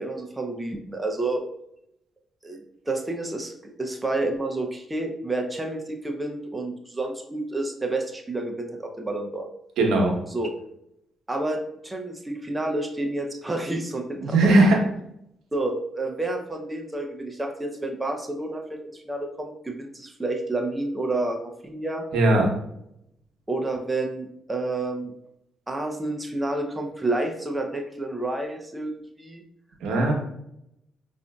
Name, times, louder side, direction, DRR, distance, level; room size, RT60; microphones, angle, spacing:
voice 1, 0.0-1.4 2.4-2.6 2.9-9.5 10.3-10.5 11.3-14.6 15.5-22.1 23.5-25.1 25.7-29.4, right 2 dB, 15° right, 3 dB, 0.5 m, -29 dB
voice 2, 9.8-10.1 14.2-14.9 22.1-22.5 29.8-30.1, right 2 dB, 80° right, 0 dB, 0.8 m, -18 dB
4.8 x 2.6 x 2.3 m, 0.78 s
cardioid pair, 70°, 0 cm